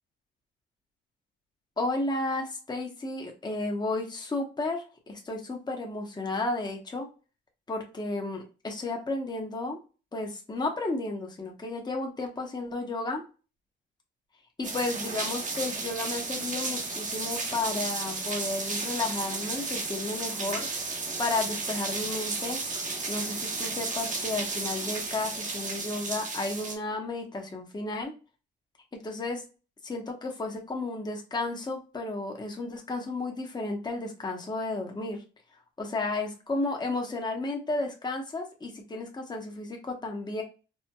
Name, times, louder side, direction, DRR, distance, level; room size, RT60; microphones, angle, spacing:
voice 1, 1.8-7.1 7.7-9.8 10.1-13.2 14.6-20.7 21.2-22.6 23.1-28.1 29.0-29.4 29.8-35.2 35.8-40.4, left 2 dB, 20° left, 1 dB, 0.9 m, -33 dB
sound 1, 14.6-26.8, right 3 dB, 40° right, 0.9 m, -33 dB
4.3 x 2.1 x 2.2 m, 0.33 s
cardioid pair, 90°, 20 cm